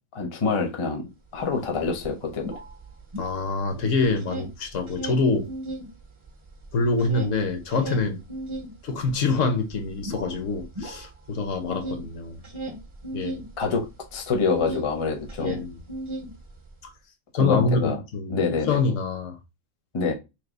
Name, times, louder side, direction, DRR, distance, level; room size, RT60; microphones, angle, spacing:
voice 1, 0.1-1.0 1.3-2.5 13.6-13.8 14.1-15.6 17.4-18.0 18.3-18.8 19.9-20.1, left 4 dB, 30° left, 0.7 m, -26 dB
sound 1, 1.4-1.5 1.7-3.7 4.0-5.9 6.3-14.9 15.2-16.7, right 1 dB, 25° right, 0.7 m, -36 dB
voice 2, 3.2-5.5 6.7-8.2 8.8-12.4 13.1-13.4 15.4-15.8 16.8-16.9 17.3-19.4, left 3 dB, 65° left, 1.1 m, -25 dB
3.4 x 2.8 x 3.9 m
omnidirectional pair, 1.4 m